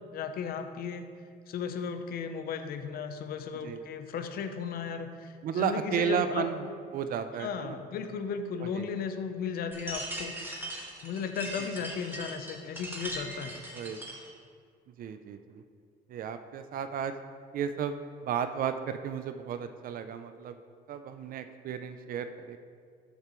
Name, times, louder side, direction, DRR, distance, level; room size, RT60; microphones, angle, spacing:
voice 1, 0.1-1.1 1.5-6.5 7.4-10.4 11.0-13.5, left 6 dB, 65° left, 8 dB, 0.8 m, -35 dB
voice 2, 5.4-7.8 8.6-8.9 13.7-14.0 15.0-15.6 16.1-17.2 17.5-20.6 20.9-22.6, right 7 dB, 55° right, 9 dB, 0.5 m, -33 dB
sound 1, 9.7-14.3, right 1 dB, 10° right, 1.8 m, -40 dB
13.5 x 6.7 x 3.1 m, 2.1 s
cardioid pair, 110°, 17 cm